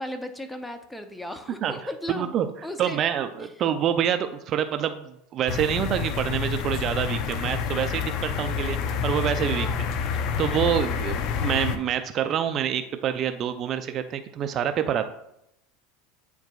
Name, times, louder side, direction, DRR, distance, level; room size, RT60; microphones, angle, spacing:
voice 1, 0.0-2.3 2.6-3.0 3.4-3.5 9.5-9.8, left 1 dB, 5° left, 8 dB, 0.6 m, -36 dB
voice 2, 2.1-2.5 2.8-9.7 10.4-15.1, right 9 dB, 45° right, 9 dB, 0.4 m, -26 dB
sound 1, 5.5-11.8, left 6 dB, 55° left, 0.6 m, -28 dB
8.7 x 4.7 x 2.3 m, 0.81 s
supercardioid pair, 105°, 0 cm